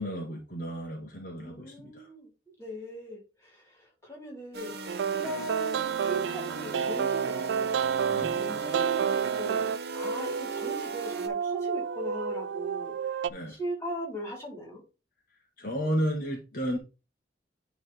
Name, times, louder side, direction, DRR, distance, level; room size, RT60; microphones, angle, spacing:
voice 1, 0.0-2.1 8.1-8.3 13.3-13.5 15.6-16.8, equal, 50° left, -1 dB, 1.7 m, -32 dB
voice 2, 1.4-2.3 2.6-4.8 5.1-9.7 9.9-12.9 13.5-14.8, right 1 dB, 15° left, -1 dB, 3.4 m, -39 dB
sound 1, 4.5-11.3, right 3 dB, 60° right, 1.0 m, -40 dB
sound 2, 4.9-13.3, right 7 dB, 85° right, 0.3 m, -30 dB
9.8 x 3.9 x 3.9 m, 0.31 s
head